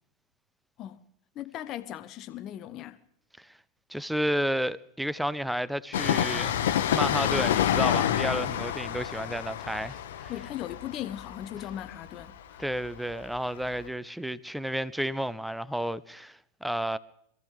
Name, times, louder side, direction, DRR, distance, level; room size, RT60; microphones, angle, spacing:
voice 1, 1.4-3.0 10.3-12.6, left 12 dB, 35° left, 0.7 m, -38 dB
voice 2, 3.9-6.5 6.9-10.3 12.6-17.0, equal, ahead, 0.6 m, -31 dB
Train, 5.9-13.4 13.6-13.7, left 10 dB, 60° left, 1.0 m, -28 dB
26.0 x 14.5 x 3.4 m
figure-of-eight pair, 90°, 0 cm